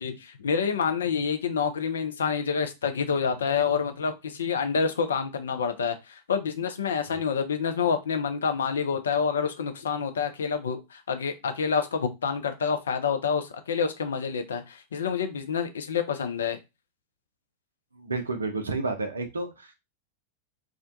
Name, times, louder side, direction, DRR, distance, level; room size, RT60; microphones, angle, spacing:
voice 1, 0.0-16.6, left 6 dB, 65° left, 0.4 m, -28 dB
voice 2, 17.9-19.7, right 3 dB, 75° right, 0.4 m, -31 dB
2.4 x 2.1 x 2.5 m
figure-of-eight pair, 90°, 0 cm